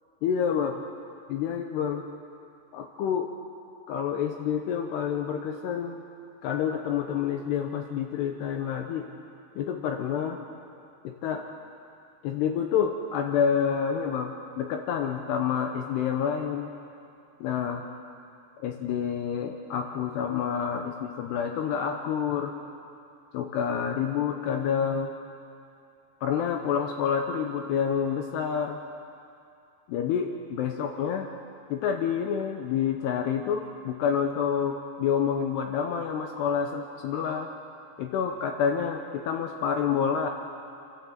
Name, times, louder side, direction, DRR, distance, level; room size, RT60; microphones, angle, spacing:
voice 1, 0.2-0.7 1.3-2.0 2.7-3.3 3.9-6.0 6.4-9.1 9.6-10.4 11.0-11.5 12.2-16.7 17.4-17.8 18.6-22.5 23.3-25.1 26.2-28.8 29.9-31.3 31.7-37.5 38.0-40.3, left 7 dB, 75° left, 4 dB, 2.7 m, -28 dB
29.5 x 12.0 x 7.5 m, 2.5 s
omnidirectional pair, 5.3 m